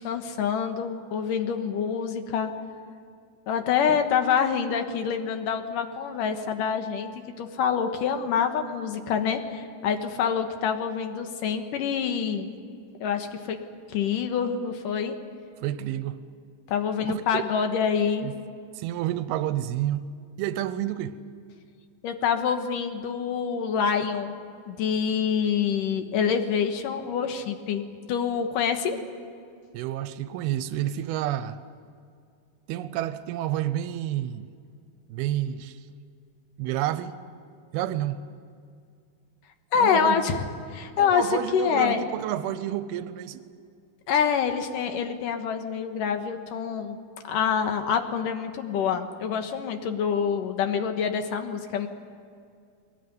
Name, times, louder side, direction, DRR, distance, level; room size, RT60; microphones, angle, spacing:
voice 1, 0.0-2.5 3.5-7.1 7.4-12.5 13.0-13.6 13.9-15.2 16.7-18.3 22.0-24.3 24.7-27.8 28.1-29.0 39.7-40.4 40.7-42.1 44.1-47.0 47.3-51.9, left 7 dB, 65° left, 2.8 m, -26 dB
voice 2, 15.6-16.2 17.1-17.2 18.2-18.3 18.8-20.1 20.4-21.2 29.7-31.6 32.7-34.5 35.1-35.8 36.6-37.2 37.7-38.2 39.8-40.2 41.0-43.4, right 12 dB, 90° right, 2.7 m, -29 dB
22.0 x 19.0 x 9.5 m
omnidirectional pair, 4.3 m